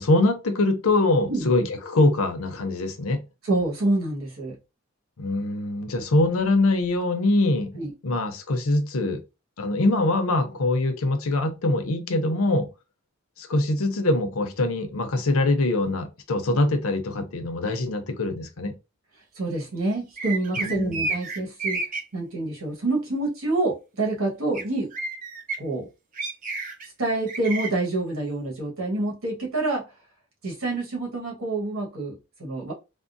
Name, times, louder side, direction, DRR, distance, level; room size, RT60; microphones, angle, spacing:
voice 1, 0.0-3.2 5.2-7.8 8.0-9.2 9.6-12.7 13.4-18.7 20.6-21.0, left 2 dB, 90° left, 0.7 m, -23 dB
voice 2, 3.4-4.6 7.8-7.9 19.3-21.8 22.1-24.9 25.6-25.9 27.0-29.8 30.4-32.7, right 2 dB, 85° right, 1.3 m, -27 dB
sound 1, 20.2-22.0 24.5-24.6 24.9-25.6 26.2-26.9 27.3-27.7, right 3 dB, 40° right, 0.6 m, -30 dB
3.5 x 2.0 x 2.6 m
head